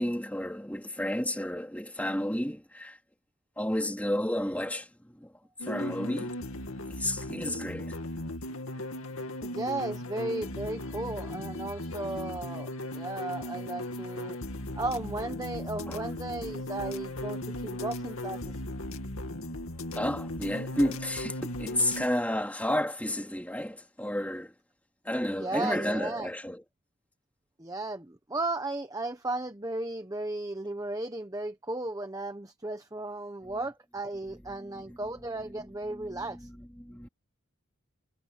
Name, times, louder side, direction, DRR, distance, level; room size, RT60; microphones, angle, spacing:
voice 1, 0.0-3.0 3.6-4.9 5.2-5.3 5.6-6.3 7.0-8.0 15.9-16.0 19.9-24.5 25.0-26.6 34.7-35.0 35.9-36.4 36.8-37.1, left 1 dB, 5° left, 3.0 m, -31 dB
sound 1, 5.6-22.1, left 1 dB, 75° left, 2.3 m, -37 dB
voice 2, 9.4-14.4 14.7-18.6 25.3-26.3 27.6-36.5, right 2 dB, 15° right, 1.0 m, -35 dB
head